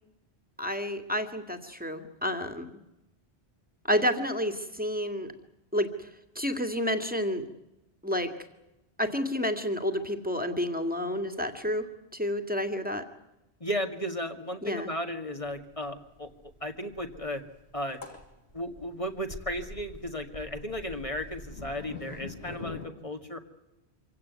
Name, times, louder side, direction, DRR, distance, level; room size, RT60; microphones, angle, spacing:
voice 1, 0.6-2.7 3.8-5.3 5.7-6.1 6.4-7.4 8.0-8.3 9.0-13.0 14.6-14.9, equal, 10° right, 8 dB, 2.1 m, -30 dB
voice 2, 13.6-16.3 16.6-17.4 17.7-18.0 18.5-23.4, equal, 30° left, 5 dB, 2.0 m, -35 dB
sound 1, 15.5-15.6 15.8-15.9 16.2-22.9, left 2 dB, 70° left, 3.1 m, -44 dB
26.0 x 17.0 x 9.5 m, 0.93 s
omnidirectional pair, 1.1 m